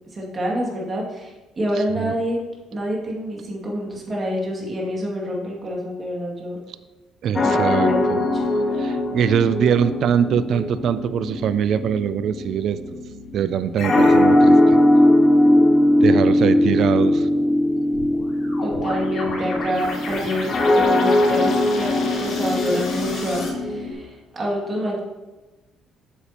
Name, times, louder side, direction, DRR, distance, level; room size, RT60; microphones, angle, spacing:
voice 1, 0.1-2.4 2.7-6.6 7.4-8.5 18.6-25.0, equal, 35° right, -3 dB, 2.3 m, -27 dB
voice 2, 7.2-8.2 8.8-12.8 13.3-14.8 16.0-17.3, right 8 dB, 60° right, 13 dB, 0.3 m, -22 dB
sound 1, 7.4-23.9, left 1 dB, 30° left, 1.0 m, -20 dB
sound 2, 13.8-14.2 17.9-23.5, left 2 dB, 60° left, 2.5 m, -33 dB
8.3 x 6.9 x 2.9 m, 1.2 s
cardioid pair, 95°, 0 cm